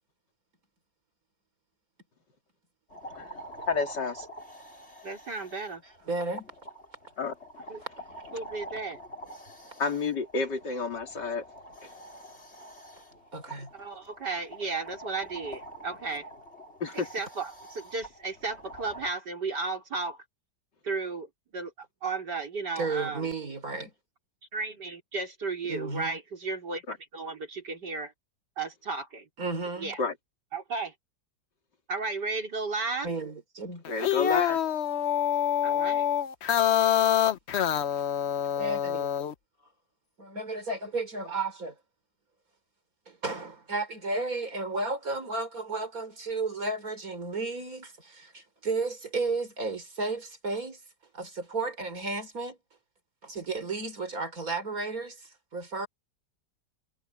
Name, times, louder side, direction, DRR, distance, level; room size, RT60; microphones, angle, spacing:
sound 1, 2.9-19.1, right 1 dB, 35° left, 4.8 m, -46 dB
voice 1, 3.7-4.2 7.2-7.3 9.8-11.4 16.8-17.1 26.9-27.0 30.0-30.1 33.9-34.6, left 4 dB, 75° left, 3.4 m, -30 dB
voice 2, 5.0-5.8 7.7-7.8 8.3-9.0 13.7-16.2 16.9-20.2 20.8-21.3 21.5-23.3 24.5-26.8 27.1-28.1 28.6-29.2 29.8-30.0 30.5-30.9 31.9-33.1 35.6-36.1, right 3 dB, 70° right, 5.0 m, -34 dB
voice 3, 5.8-6.5 13.3-13.7 15.9-16.0 22.7-23.9 25.7-26.2 29.4-30.0 33.0-33.8 38.0-38.1 38.4-39.1 40.2-41.8 43.1-50.8 51.1-52.6 53.2-55.9, right 3 dB, 50° right, 4.6 m, -33 dB
sound 2, 33.8-39.3, left 10 dB, 55° left, 0.8 m, -26 dB
omnidirectional pair, 1.9 m